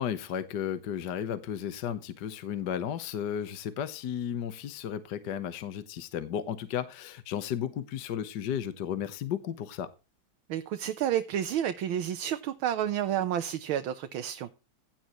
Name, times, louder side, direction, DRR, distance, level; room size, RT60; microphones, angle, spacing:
voice 1, 0.0-9.9, left 9 dB, 60° left, 1.5 m, -34 dB
voice 2, 10.5-14.5, right 10 dB, 90° right, 1.7 m, -30 dB
16.5 x 10.0 x 3.0 m
omnidirectional pair, 2.2 m